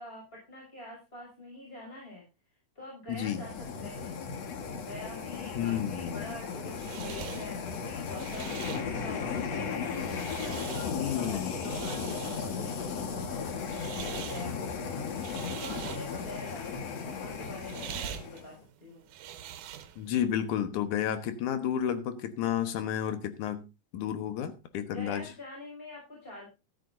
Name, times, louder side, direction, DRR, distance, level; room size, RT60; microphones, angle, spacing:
voice 1, 0.0-2.2 2.7-4.2 4.8-9.9 10.5-13.5 14.1-19.1 24.9-26.5, left 1 dB, 15° left, -3 dB, 6.5 m, -46 dB
voice 2, 3.1-3.4 5.5-6.3 10.9-11.6 20.0-23.7 23.9-25.2, left 9 dB, 75° left, 9 dB, 2.7 m, -31 dB
sound 1, 3.1-18.5, left 6 dB, 60° left, 2.7 m, -36 dB
sound 2, 6.3-20.2, right 10 dB, 85° right, 2.4 m, -44 dB
13.5 x 13.0 x 2.7 m, 0.28 s
omnidirectional pair, 3.5 m